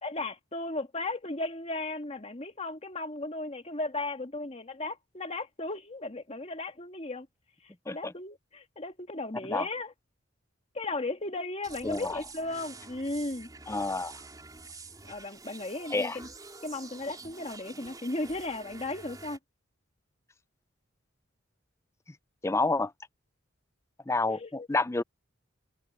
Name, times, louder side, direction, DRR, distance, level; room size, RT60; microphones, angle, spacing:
voice 1, 0.0-7.3 7.9-9.9 10.7-13.5 15.1-16.3 16.6-19.4 24.3-24.7, left 2 dB, 30° left, 1.7 m, -36 dB
sound 1, 11.6-19.4, right 3 dB, 20° right, 3.7 m, -47 dB
voice 2, 11.8-12.2 13.7-14.1 15.9-16.2 22.4-22.9 24.1-25.0, left 3 dB, 15° left, 0.5 m, -29 dB
head